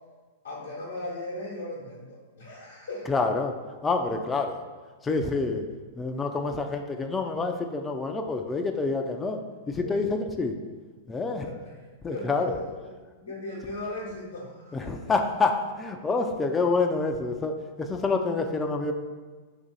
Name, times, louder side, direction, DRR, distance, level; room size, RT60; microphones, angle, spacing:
voice 1, 0.4-3.1 4.1-4.3 9.8-10.2 11.4-12.9 13.3-15.1, left 2 dB, 90° left, -6 dB, 0.8 m, -38 dB
voice 2, 3.1-3.6 3.8-4.6 5.0-5.7 6.0-9.4 9.7-10.5 11.1-11.5 12.0-12.5 14.7-18.9, left 3 dB, 15° left, 4 dB, 0.3 m, -27 dB
2.7 x 2.6 x 4.0 m, 1.4 s
hypercardioid pair, 110°, 0 cm